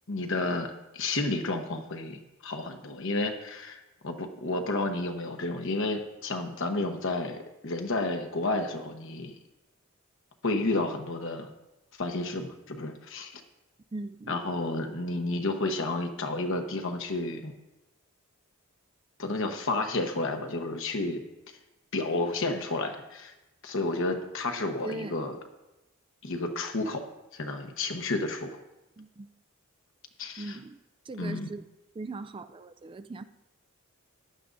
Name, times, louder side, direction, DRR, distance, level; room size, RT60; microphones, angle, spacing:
voice 1, 0.1-9.3 10.4-11.5 12.0-13.4 14.3-17.5 19.2-21.2 21.9-23.3 23.6-25.4 26.2-27.1 27.3-28.6 30.2-30.6 31.2-31.5, left 2 dB, 60° left, 6 dB, 1.1 m, -31 dB
voice 2, 13.9-14.4 24.8-25.2 29.0-29.3 30.4-30.8 31.1-31.7 32.0-33.2, right 2 dB, 25° right, 10 dB, 0.3 m, -39 dB
14.5 x 11.0 x 2.6 m, 0.98 s
head